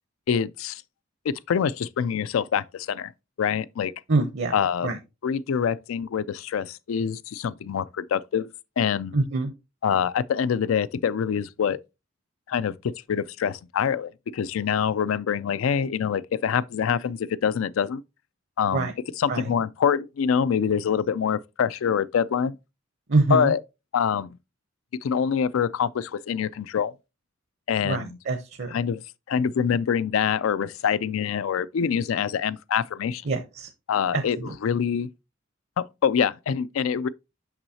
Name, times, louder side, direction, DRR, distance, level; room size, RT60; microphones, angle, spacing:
voice 1, 0.3-0.8 1.3-3.1 3.4-3.9 4.5-4.9 5.2-8.5 8.8-9.2 9.8-11.8 12.5-18.0 18.6-18.9 19.2-22.6 23.3-23.6 23.9-24.3 25.0-26.9 27.7-28.2 28.7-29.0 29.3-33.2 33.9-35.1 35.8-37.1, left 7 dB, 75° left, 0.4 m, -25 dB
voice 2, 4.1-4.5 4.8-5.0 9.1-9.5 18.7-18.9 19.3-19.5 23.1-23.5 27.8-28.7 33.3-33.7 34.1-34.5, right 3 dB, 55° right, 0.7 m, -25 dB
6.2 x 5.9 x 2.7 m
head